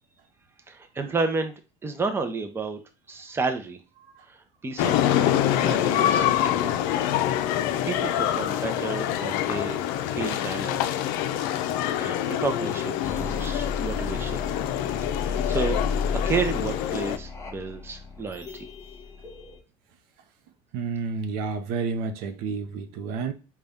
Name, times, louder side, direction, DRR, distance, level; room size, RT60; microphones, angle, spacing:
voice 1, 0.7-1.5 1.8-2.8 3.1-3.8 4.3-6.8 7.8-9.8 10.1-10.8 11.4-11.6 12.0-14.4 15.0-15.8 16.3-18.6, right 4 dB, 15° right, 0.6 m, -31 dB
sound 1, 4.8-17.2, left 11 dB, 75° left, 0.4 m, -26 dB
sound 2, 13.0-19.6, left 4 dB, 20° left, 0.8 m, -33 dB
voice 2, 20.7-23.3, right 5 dB, 75° right, 0.6 m, -30 dB
4.0 x 2.3 x 3.5 m
supercardioid pair, 110°, 15 cm